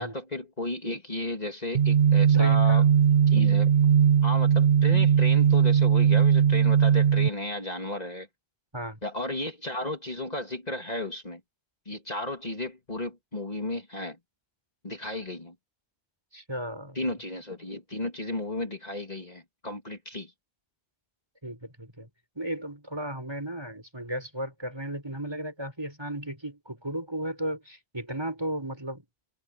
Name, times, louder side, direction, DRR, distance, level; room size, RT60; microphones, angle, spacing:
voice 1, 0.0-2.8 3.3-3.7 4.2-8.3 9.0-11.4 11.9-14.2 14.8-15.5 16.9-20.3, left 2 dB, 40° left, 2.9 m, -34 dB
sound 1, 1.7-7.3, right 8 dB, 70° right, 1.1 m, -19 dB
voice 2, 2.3-2.8 8.7-9.0 16.3-17.1 21.4-22.1 22.3-29.0, right 1 dB, 25° right, 6.5 m, -35 dB
omnidirectional pair, 1.1 m